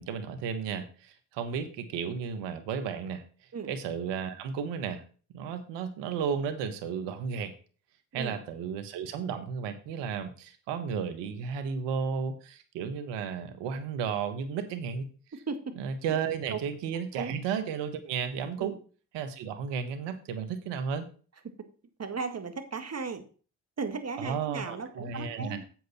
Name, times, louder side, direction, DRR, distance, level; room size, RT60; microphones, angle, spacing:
voice 1, 0.0-3.2 3.7-5.0 5.3-7.5 8.1-15.1 15.8-18.8 19.1-21.1 24.2-25.6, right 6 dB, 85° right, 10 dB, 1.4 m, -33 dB
voice 2, 16.9-17.4 18.6-18.8 21.4-21.5 22.0-23.2 23.8-25.6, right 4 dB, 35° right, 8 dB, 1.8 m, -36 dB
7.9 x 7.7 x 4.2 m, 0.38 s
supercardioid pair, 60°, 41 cm